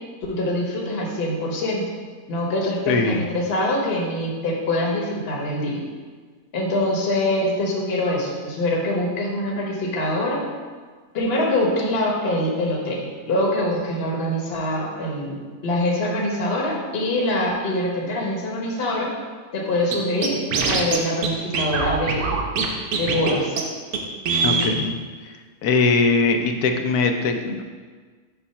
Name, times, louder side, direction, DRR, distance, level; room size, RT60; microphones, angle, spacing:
voice 1, 0.3-1.9 2.3-5.8 6.5-10.4 11.1-19.1 19.5-22.4 22.9-23.6, left 1 dB, 45° left, -2 dB, 1.1 m, -24 dB
voice 2, 2.9-3.2 24.4-25.0 25.6-27.6, left 4 dB, 80° left, 5 dB, 1.1 m, -21 dB
Scratching (performance technique), 19.9-20.0 20.2-21.0 21.2-21.3 21.5-22.7 22.9-23.3 23.6-23.7 23.9-24.0 24.3-24.7, right 5 dB, 75° right, 1.2 m, -22 dB
7.0 x 2.4 x 5.5 m, 1.5 s
omnidirectional pair, 1.6 m